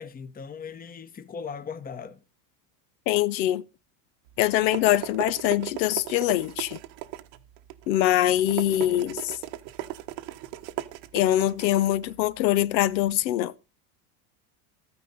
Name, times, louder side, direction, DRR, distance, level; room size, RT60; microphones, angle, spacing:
voice 1, 0.0-2.2, left 6 dB, 20° left, 0.9 m, -38 dB
voice 2, 3.1-3.6 4.4-6.8 7.9-9.3 11.1-13.5, left 13 dB, 90° left, 0.9 m, -23 dB
sound 1, 4.3-13.1, right 15 dB, 75° right, 1.3 m, -38 dB
13.5 x 9.8 x 4.0 m
supercardioid pair, 120°, 50 cm